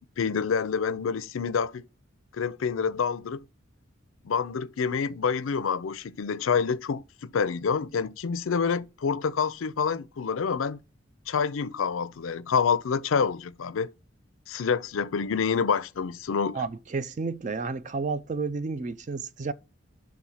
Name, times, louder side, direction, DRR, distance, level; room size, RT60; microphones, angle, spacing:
voice 1, 0.0-1.8 2.3-3.4 4.2-10.8 11.3-13.9 14.5-16.6, left 6 dB, 80° left, 0.5 m, -27 dB
voice 2, 16.5-19.5, right 4 dB, 35° right, 0.4 m, -31 dB
6.1 x 3.6 x 5.6 m
head